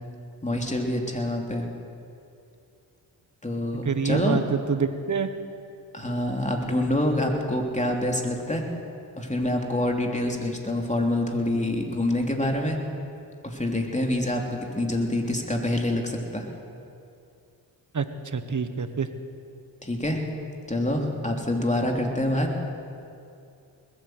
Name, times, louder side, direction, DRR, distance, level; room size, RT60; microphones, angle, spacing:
voice 1, 0.4-1.7 3.4-4.4 5.9-8.6 9.2-12.8 13.4-16.5 19.8-20.2 20.7-22.5, left 1 dB, 15° left, 1 dB, 3.1 m, -26 dB
voice 2, 3.8-5.3 17.9-18.1 18.3-19.1, right 5 dB, 40° right, 10 dB, 1.3 m, -26 dB
20.5 x 8.8 x 7.9 m, 2.5 s
supercardioid pair, 45°, 47 cm